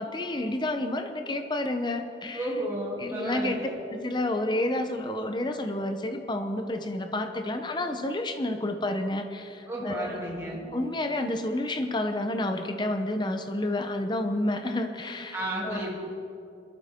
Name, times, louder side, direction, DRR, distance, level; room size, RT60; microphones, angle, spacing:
voice 1, 0.0-2.5 3.0-3.6 3.9-10.2 10.7-15.9, left 1 dB, 25° left, 6 dB, 0.8 m, -30 dB
voice 2, 2.3-3.8 9.7-10.7 15.3-15.9, right 1 dB, 15° right, -6 dB, 3.1 m, -32 dB
22.0 x 13.0 x 3.7 m, 2.6 s
head